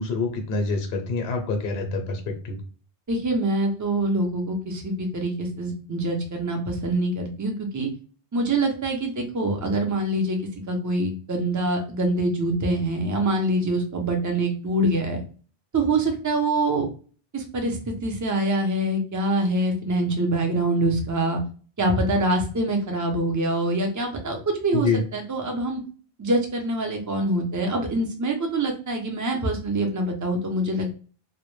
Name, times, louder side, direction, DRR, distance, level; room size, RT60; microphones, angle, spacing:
voice 1, 0.0-2.6 24.7-25.0, left 3 dB, 75° left, 4 dB, 0.8 m, -26 dB
voice 2, 3.1-7.9 8.3-10.4 10.7-15.2 15.7-16.9 17.3-21.4 21.8-25.8 26.2-31.0, right 1 dB, 30° right, 3 dB, 0.3 m, -25 dB
2.1 x 2.1 x 3.0 m, 0.40 s
omnidirectional pair, 1.0 m